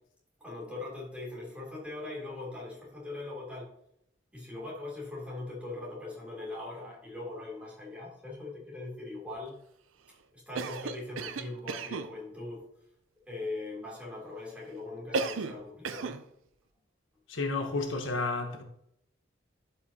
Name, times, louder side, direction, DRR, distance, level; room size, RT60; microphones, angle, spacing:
voice 1, 0.4-3.7 4.3-9.6 10.3-12.7 13.3-16.2, left 2 dB, 5° right, 3.2 m, -40 dB
Cough, 10.5-12.1 15.1-15.6 15.8-16.2, right 4 dB, 80° right, 0.6 m, -34 dB
voice 2, 17.3-18.6, left 3 dB, 70° left, 1.0 m, -31 dB
12.0 x 5.6 x 2.8 m
head